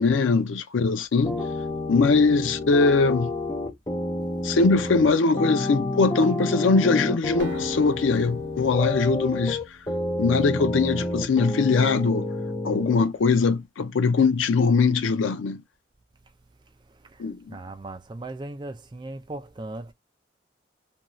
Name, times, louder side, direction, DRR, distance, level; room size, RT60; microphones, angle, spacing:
voice 1, 0.0-1.4 1.9-3.3 4.4-9.6 10.2-12.3 12.6-15.6 17.2-17.4, left 4 dB, 90° left, 0.4 m, -21 dB
sound 1, 1.2-13.0, left 1 dB, 20° left, 0.6 m, -29 dB
Acoustic guitar, 7.4-10.4, equal, 75° right, 0.8 m, -40 dB
voice 2, 17.5-19.9, right 2 dB, 25° right, 0.4 m, -37 dB
2.6 x 2.3 x 2.9 m
head